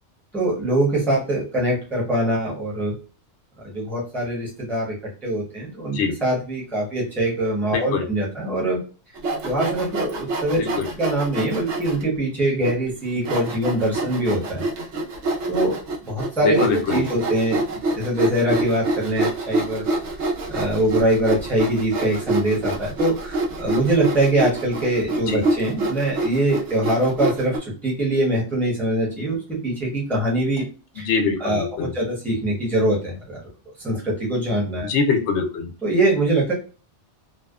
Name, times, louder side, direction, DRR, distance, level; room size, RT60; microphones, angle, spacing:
voice 1, 0.3-2.9 3.6-5.0 5.2-8.8 9.4-10.6 11.0-14.6 15.5-15.8 16.1-19.8 20.5-30.6 30.9-31.1 31.4-33.4 33.8-34.9 35.8-36.5, right 1 dB, ahead, -5 dB, 0.8 m, -23 dB
voice 2, 7.7-8.0 10.5-10.9 16.4-17.0 25.3-25.4 31.1-31.9 34.8-35.7, left 5 dB, 75° left, 5 dB, 0.9 m, -23 dB
Sawing, 9.2-12.0 12.6-12.7 13.2-27.6, right 2 dB, 75° right, 0.9 m, -26 dB
2.6 x 2.2 x 2.3 m, 0.36 s
omnidirectional pair, 1.2 m